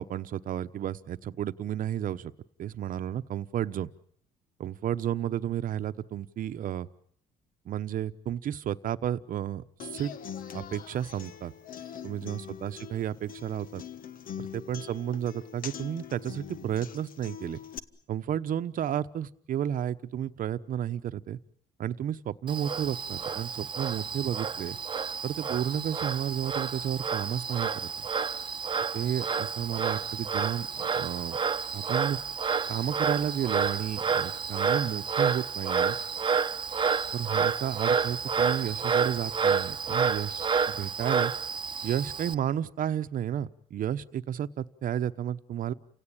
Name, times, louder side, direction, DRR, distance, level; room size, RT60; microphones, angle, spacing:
voice 1, 0.0-2.3 2.6-3.9 4.6-6.9 7.6-10.1 10.5-11.5 12.0-13.8 14.4-17.6 18.1-21.4 21.8-24.8 25.2-27.9 28.9-31.4 31.7-32.2 32.7-36.0 37.1-41.3 41.8-45.7, right 10 dB, 55° right, 12 dB, 1.0 m, -32 dB
Human voice / Acoustic guitar, 9.8-17.8, left 8 dB, 55° left, 1.4 m, -43 dB
Frog, 22.5-42.3, right 6 dB, 30° right, 1.0 m, -30 dB
29.5 x 17.0 x 8.9 m, 0.64 s
cardioid pair, 110°, 17 cm